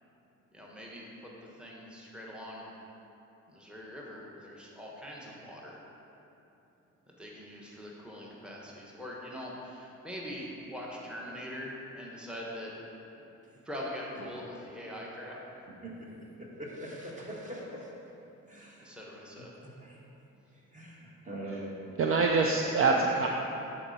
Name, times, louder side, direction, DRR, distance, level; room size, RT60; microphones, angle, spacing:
voice 1, 0.5-2.7 3.5-5.8 7.1-12.7 13.6-15.4 18.8-19.6, equal, 5° right, -4 dB, 1.2 m, -43 dB
voice 2, 16.4-17.9 18.5-18.9 19.6-20.0 20.7-21.8, right 1 dB, 25° right, -4 dB, 1.8 m, -42 dB
voice 3, 22.0-23.3, right 4 dB, 45° right, 1 dB, 0.6 m, -25 dB
10.0 x 4.4 x 4.2 m, 2.9 s
cardioid pair, 90°, 30 cm